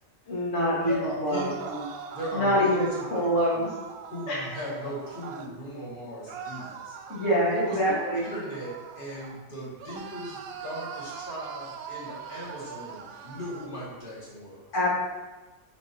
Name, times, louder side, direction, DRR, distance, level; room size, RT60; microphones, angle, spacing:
voice 1, 0.3-1.5 2.3-3.7 4.3-4.4 7.1-8.2 14.7-14.9, equal, 60° left, -6 dB, 2.2 m, -25 dB
voice 2, 0.8-1.9 2.1-3.3 3.5-3.6 4.1-7.0 7.5-14.7, equal, 35° left, -8 dB, 2.5 m, -37 dB
sound 1, 1.2-5.5 6.3-9.4 9.8-13.7, right 6 dB, 90° right, 1.1 m, -41 dB
9.8 x 5.3 x 2.9 m, 1.2 s
omnidirectional pair, 1.4 m